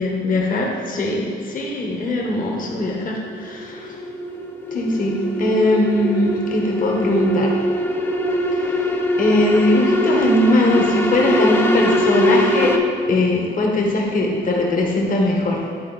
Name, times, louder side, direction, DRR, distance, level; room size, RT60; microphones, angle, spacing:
voice 1, 0.0-4.0 4.7-7.6 8.5-8.8 9.2-12.7 13.1-15.6, left 1 dB, 45° left, -1 dB, 1.3 m, -20 dB
sound 1, 2.2-12.8, left 1 dB, 10° left, 0.6 m, -22 dB
9.8 x 3.8 x 4.1 m, 2.2 s
cardioid pair, 90°, 20 cm